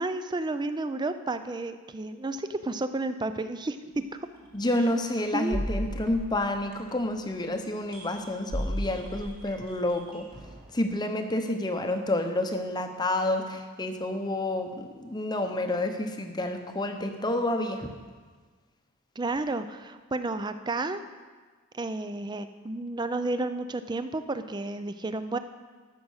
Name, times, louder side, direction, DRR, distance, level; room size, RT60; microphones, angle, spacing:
voice 1, 0.0-4.1 5.3-5.6 19.2-21.0 21.7-25.4, right 2 dB, 20° right, 11 dB, 0.4 m, -31 dB
sound 1, 4.3-4.5 5.5-7.1 7.9-8.2 8.5-10.7, equal, 40° right, 2.2 m, -34 dB
voice 2, 4.5-10.3 10.7-17.9, left 1 dB, 20° left, 5 dB, 0.7 m, -29 dB
13.5 x 6.1 x 6.4 m, 1.5 s
head